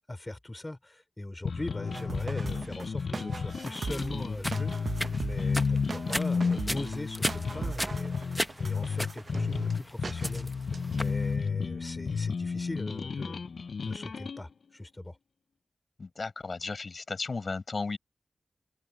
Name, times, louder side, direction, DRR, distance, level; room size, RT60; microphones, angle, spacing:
voice 1, 0.1-10.5 10.9-13.4 13.8-15.2, left 1 dB, 20° left, 3.2 m, -40 dB
sound 1, 1.4-14.4, left 5 dB, 80° left, 0.4 m, -32 dB
sound 2, 1.9-9.7 10.0-10.4 10.7-11.1, right 4 dB, 60° right, 0.9 m, -39 dB
sound 3, 3.9-11.2, equal, 5° left, 0.8 m, -36 dB
voice 2, 16.0-18.0, left 4 dB, 55° left, 7.8 m, -34 dB
open air
wide cardioid pair, 110°, 0 cm